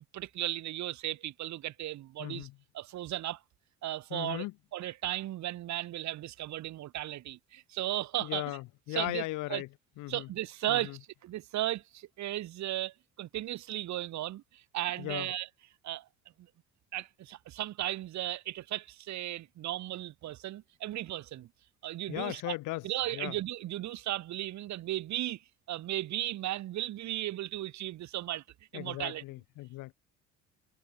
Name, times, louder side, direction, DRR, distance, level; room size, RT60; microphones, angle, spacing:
voice 1, 0.1-2.5 2.7-3.4 3.8-4.5 4.7-8.4 8.9-9.2 9.5-9.6 10.1-15.5 15.8-16.0 16.9-21.5 21.8-22.5 22.8-25.4 25.7-28.4 28.7-29.2, right 14 dB, 50° right, 1.1 m, -35 dB
voice 2, 2.2-2.5 4.1-4.5 8.2-9.7 10.0-10.3 10.7-11.0 15.0-15.3 22.1-22.9 23.1-23.4 28.7-29.9, left 19 dB, 60° left, 0.9 m, -37 dB
hypercardioid pair, 55°, 35 cm